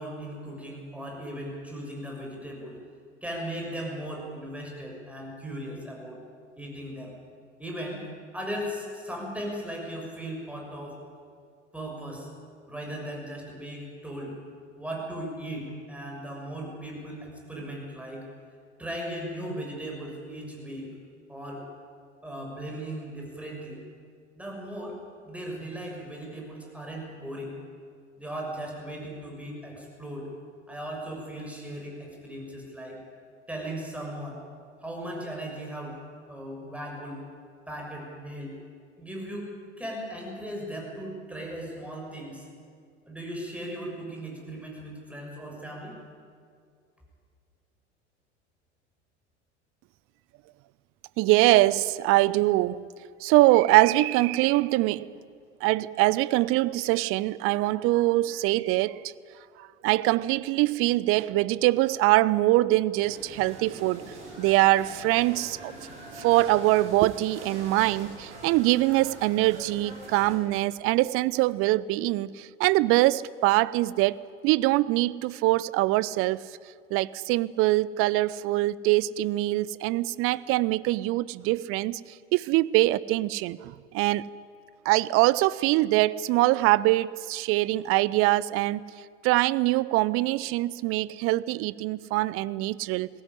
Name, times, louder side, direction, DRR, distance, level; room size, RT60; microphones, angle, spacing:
voice 1, 0.0-2.8 3.2-6.2 6.6-7.1 7.6-8.0 8.3-11.0 11.7-12.3 12.7-14.3 14.8-18.2 18.8-20.9 21.3-21.6 22.2-23.8 24.4-25.0 25.2-27.5 28.2-30.3 30.7-33.0 33.5-34.4 34.8-36.0 36.3-37.2 37.7-38.6 39.0-39.5 39.8-42.5 43.1-45.9, right 1 dB, 5° right, 6.5 m, -37 dB
voice 2, 51.2-52.9 53.2-55.1 55.6-59.1 59.6-65.7 66.2-74.2 74.4-76.5 76.9-82.0 82.3-84.3 84.8-88.8 89.2-93.1, right 18 dB, 40° right, 0.6 m, -23 dB
sound 1, 63.0-70.4, right 1 dB, 70° right, 5.1 m, -44 dB
20.5 x 17.0 x 9.9 m
figure-of-eight pair, 75°, 36 cm